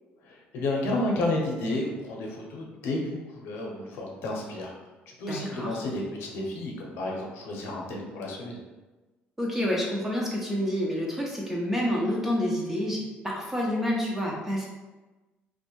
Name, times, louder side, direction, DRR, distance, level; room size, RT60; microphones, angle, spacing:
voice 1, 0.2-4.7 5.2-8.6, left 2 dB, 75° left, -1 dB, 0.6 m, -31 dB
voice 2, 5.3-5.8 9.4-14.7, equal, 10° right, -3 dB, 0.3 m, -28 dB
2.5 x 2.1 x 2.9 m, 1.2 s
cardioid pair, 170°, 4 cm